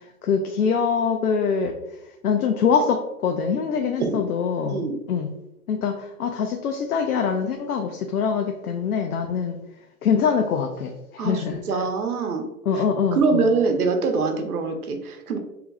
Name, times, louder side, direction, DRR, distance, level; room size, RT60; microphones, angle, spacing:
voice 1, 0.2-1.7 2.2-5.3 5.7-9.6 10.0-11.6 12.7-13.4, left 6 dB, 75° left, 4 dB, 0.6 m, -24 dB
voice 2, 11.2-12.4 12.7-12.8 13.1-15.4, right 4 dB, 75° right, 4 dB, 0.9 m, -24 dB
3.3 x 3.0 x 3.5 m, 0.86 s
hypercardioid pair, 120°, 44 cm